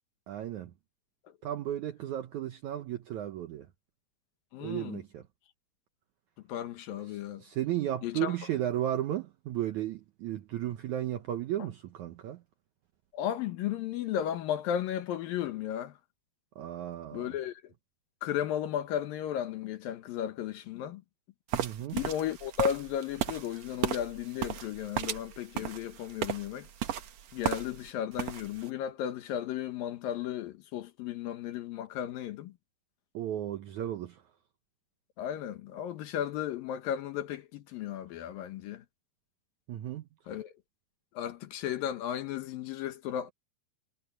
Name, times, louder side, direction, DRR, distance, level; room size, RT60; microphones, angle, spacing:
voice 1, 0.3-0.7 1.4-3.7 4.6-5.2 7.1-12.4 16.6-17.4 21.5-22.0 33.1-34.2 39.7-40.1, right 12 dB, 75° right, 1.8 m, -34 dB
voice 2, 4.5-5.0 6.5-7.4 8.0-8.3 13.1-15.9 17.1-17.6 18.2-21.0 21.9-26.7 27.3-32.5 35.2-38.8 40.3-40.5 41.2-43.3, left 10 dB, 70° left, 2.8 m, -34 dB
sound 1, 21.5-27.9 28.2-28.7, right 10 dB, 60° right, 1.9 m, -35 dB
omnidirectional pair, 4.5 m